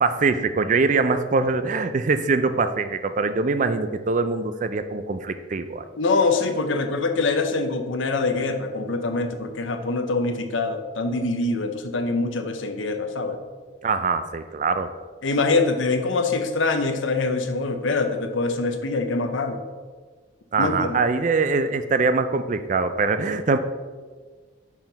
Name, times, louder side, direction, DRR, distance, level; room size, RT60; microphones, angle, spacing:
voice 1, 0.0-5.9 13.8-14.9 20.5-23.6, right 4 dB, 40° right, 10 dB, 0.4 m, -23 dB
voice 2, 6.0-13.4 15.2-19.6 20.6-21.0, left 3 dB, 80° left, 6 dB, 0.7 m, -24 dB
5.8 x 4.5 x 5.2 m, 1.4 s
head